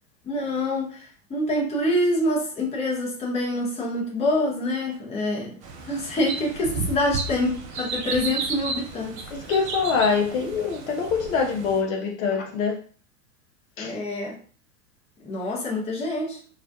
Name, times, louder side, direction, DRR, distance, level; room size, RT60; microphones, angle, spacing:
voice 1, 0.2-5.5 5.8-9.2 13.8-14.4 15.2-16.4, left 1 dB, 15° left, -3 dB, 0.7 m, -26 dB
sound 1, 5.6-11.8, right 4 dB, 30° right, 0.4 m, -33 dB
voice 2, 9.3-12.8 13.8-13.9, left 5 dB, 55° left, 3 dB, 0.6 m, -24 dB
2.4 x 2.1 x 2.6 m, 0.42 s
figure-of-eight pair, 95°, 48 cm